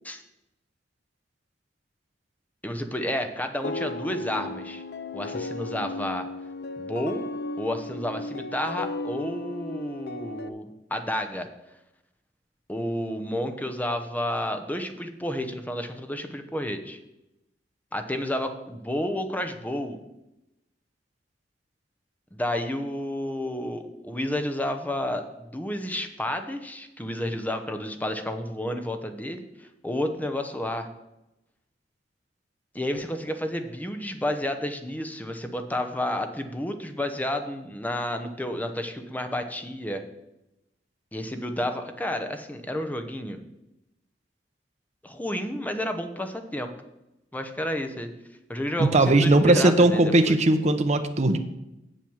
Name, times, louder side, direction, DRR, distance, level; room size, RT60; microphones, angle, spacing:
voice 1, 2.6-4.8 5.1-6.3 6.8-7.2 7.6-11.5 12.7-17.0 17.9-20.0 22.3-30.9 32.7-40.0 41.1-43.5 45.0-46.7 47.3-48.1 48.5-50.4, left 1 dB, 10° left, 7 dB, 0.9 m, -31 dB
sound 1, 3.6-10.5, left 2 dB, 60° left, 0.6 m, -35 dB
voice 2, 48.8-51.4, right 2 dB, 40° right, 6 dB, 0.9 m, -19 dB
7.8 x 7.6 x 7.2 m, 0.92 s
head